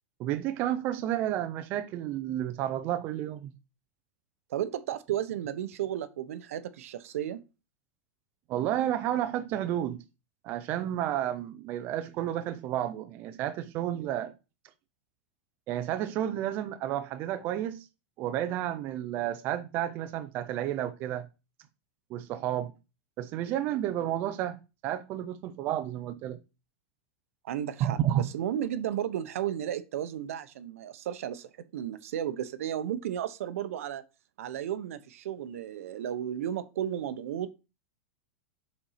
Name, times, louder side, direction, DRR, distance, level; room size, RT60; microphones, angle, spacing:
voice 1, 0.2-3.5 8.5-10.0 10.4-14.3 15.7-17.8 18.2-21.3 22.1-22.7 23.2-26.4 27.8-28.2, right 12 dB, 25° right, 0.5 m, -31 dB
voice 2, 4.5-7.4 27.4-34.0 34.4-37.5, right 10 dB, 70° right, 0.9 m, -34 dB
7.0 x 4.4 x 5.7 m
supercardioid pair, 180°, 8 cm